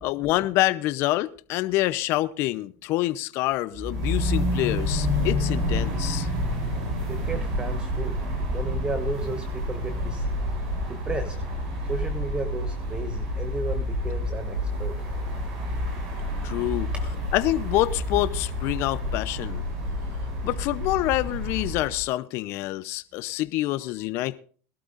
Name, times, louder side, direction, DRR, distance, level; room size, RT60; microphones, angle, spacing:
voice 1, 0.0-6.3 16.4-16.9 17.3-19.6 20.4-24.4, left 17 dB, 60° left, 0.7 m, -26 dB
sound 1, 3.7-22.0, left 1 dB, 70° right, 7.0 m, -29 dB
voice 2, 7.1-10.2 10.9-11.4 11.9-15.0 16.9-17.1, right 2 dB, 20° right, 1.3 m, -34 dB
20.5 x 12.5 x 2.5 m
supercardioid pair, 105°, 5 cm